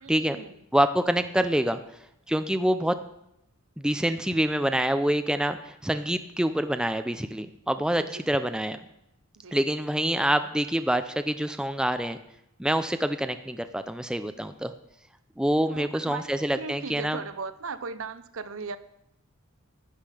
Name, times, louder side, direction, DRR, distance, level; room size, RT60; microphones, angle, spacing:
voice 1, 0.0-0.6 7.9-8.2 9.4-9.6 15.7-18.8, right 4 dB, 65° right, 13 dB, 0.7 m, -38 dB
voice 2, 0.7-1.8 2.3-3.0 3.8-8.8 9.5-12.2 12.6-14.7 15.4-17.2, right 1 dB, 5° right, 9 dB, 0.4 m, -26 dB
12.0 x 10.5 x 4.9 m, 0.82 s
head